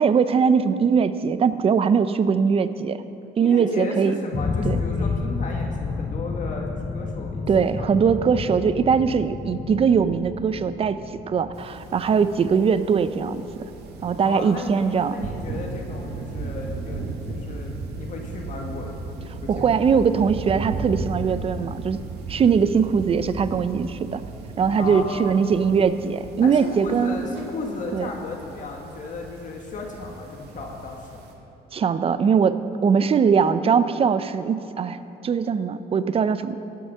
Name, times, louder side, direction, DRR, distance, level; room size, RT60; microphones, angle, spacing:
voice 1, 0.0-3.0 3.4-4.2 4.6-4.8 7.5-11.0 11.3-13.4 14.0-15.3 19.5-22.0 22.3-24.2 24.6-27.2 27.9-28.1 31.7-35.0 35.2-36.6, right 6 dB, 35° right, 13 dB, 0.6 m, -21 dB
voice 2, 3.4-7.4 7.7-7.8 14.2-19.0 19.4-19.8 24.8-25.4 26.4-31.2, left 3 dB, 50° left, 1 dB, 1.6 m, -34 dB
sound 1, 4.3-13.2, left 4 dB, 20° left, 0.6 m, -30 dB
sound 2, 11.5-31.3, right 3 dB, 85° right, 1.6 m, -36 dB
15.0 x 8.6 x 5.6 m, 2.8 s
cardioid pair, 110°, 17 cm